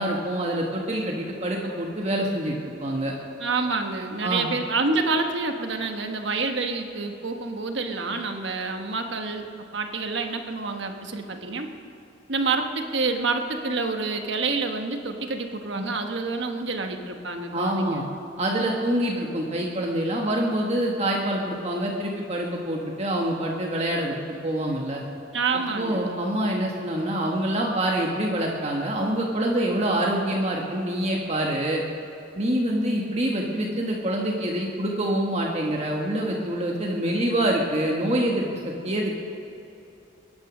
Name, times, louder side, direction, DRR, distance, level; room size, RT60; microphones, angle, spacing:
voice 1, 0.0-3.1 4.2-4.5 15.8-15.9 17.5-18.0 18.4-24.1 24.4-25.0 25.7-31.8 32.3-39.2, right 1 dB, 35° right, -1 dB, 1.4 m, -26 dB
voice 2, 3.4-9.5 9.7-11.7 12.3-18.1 25.3-26.1, right 3 dB, 65° right, 4 dB, 1.4 m, -28 dB
22.5 x 10.5 x 6.1 m, 2.8 s
head